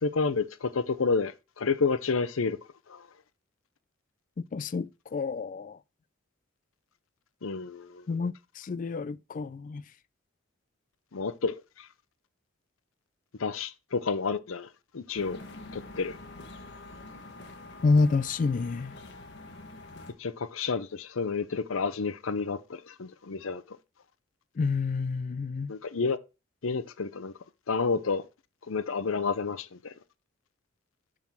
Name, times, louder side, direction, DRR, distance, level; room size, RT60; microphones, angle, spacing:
voice 1, 0.0-2.6 2.9-3.1 7.4-8.1 11.1-11.9 13.4-14.7 14.9-15.4 15.7-16.2 20.2-23.8 25.7-26.2 26.6-27.3 27.7-28.2 28.7-29.9, left 4 dB, 85° left, 0.7 m, -30 dB
voice 2, 4.4-5.8 8.1-9.8 17.8-19.0 24.6-25.7, left 4 dB, 40° left, 0.3 m, -28 dB
sound 1, 15.1-20.1, left 2 dB, 55° left, 1.4 m, -46 dB
7.4 x 3.8 x 6.0 m
head